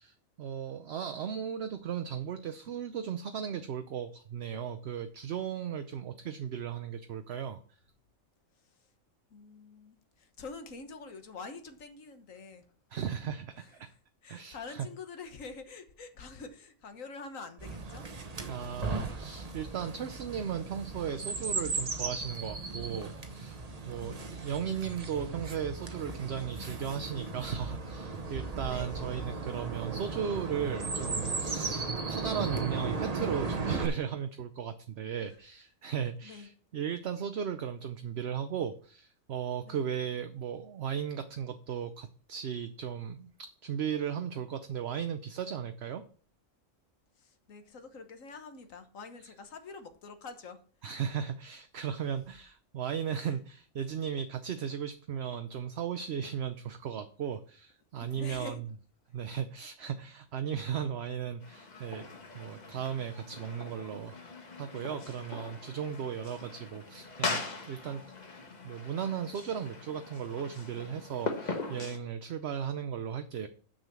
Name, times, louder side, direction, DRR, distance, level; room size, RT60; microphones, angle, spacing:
voice 1, 0.0-7.8 12.9-13.9 14.3-14.9 18.5-46.0 50.8-58.7 59.1-62.0 62.3-68.0 68.6-73.5, right 8 dB, 60° right, 0.9 m, -36 dB
voice 2, 9.3-12.6 13.6-18.1 24.0-24.4 28.5-29.2 35.2-35.4 36.2-36.5 39.6-39.8 47.2-50.6 53.2-53.3 58.0-58.6, left 4 dB, 80° left, 1.6 m, -46 dB
Chirp tweet, 17.6-33.9, right 3 dB, 30° right, 1.0 m, -36 dB
sound 1, 61.4-72.0, left 3 dB, 35° left, 1.3 m, -40 dB
6.7 x 6.4 x 7.4 m
omnidirectional pair, 1.4 m